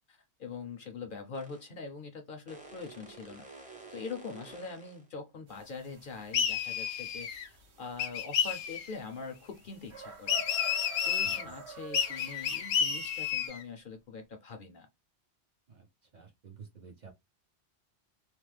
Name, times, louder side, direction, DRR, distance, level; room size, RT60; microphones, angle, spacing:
voice 1, 0.0-3.5 3.9-10.4 11.0-14.9, left 4 dB, 60° left, 0.6 m, -43 dB
sound 1, 1.3-1.7 2.5-5.1, right 3 dB, 10° right, 0.5 m, -50 dB
sound 2, 5.5-13.5, right 4 dB, 70° right, 1.2 m, -49 dB
sound 3, 6.3-7.5 8.0-8.9 10.3-11.4 11.9-13.6, left 8 dB, 80° left, 0.9 m, -31 dB
voice 2, 11.2-11.5 15.7-15.9 16.1-17.1, right 6 dB, 50° right, 0.6 m, -51 dB
2.9 x 2.0 x 3.2 m
omnidirectional pair, 1.2 m